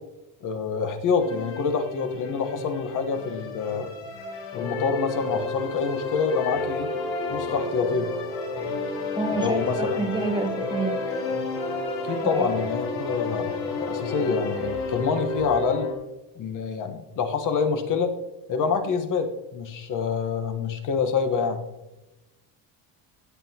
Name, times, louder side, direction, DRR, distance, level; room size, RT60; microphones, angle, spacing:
voice 1, 0.4-3.9 4.5-6.9 7.3-8.1 9.3-10.1 12.0-13.5 13.8-15.9 16.4-18.1 18.5-21.6, left 5 dB, 40° left, 6 dB, 1.2 m, -26 dB
sound 1, 1.2-15.9, left 3 dB, 80° left, 3.7 m, -31 dB
voice 2, 9.2-11.0 12.2-12.5 14.3-14.4, right 2 dB, 10° right, 4 dB, 0.9 m, -28 dB
16.5 x 7.8 x 2.8 m, 0.96 s
cardioid pair, 145°, 45 cm